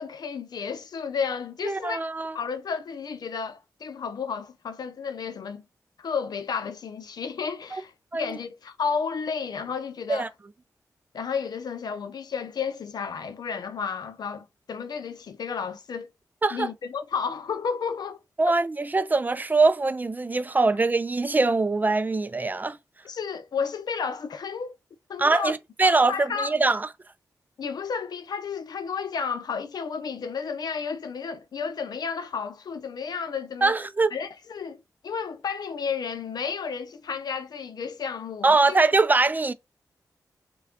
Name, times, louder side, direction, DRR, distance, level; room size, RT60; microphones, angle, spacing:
voice 1, 0.0-2.0 2.3-5.6 6.0-7.9 8.2-10.3 11.1-16.1 16.5-18.2 23.0-24.8 25.1-25.5 25.8-26.6 27.6-33.8 34.1-38.8, left 6 dB, 75° left, 0.6 m, -32 dB
voice 2, 1.6-2.4 8.1-8.4 10.1-10.3 16.4-16.7 18.4-22.8 25.2-26.9 33.6-34.1 38.4-39.5, right 3 dB, 25° right, 0.4 m, -23 dB
3.3 x 2.3 x 3.5 m
cardioid pair, 50°, 7 cm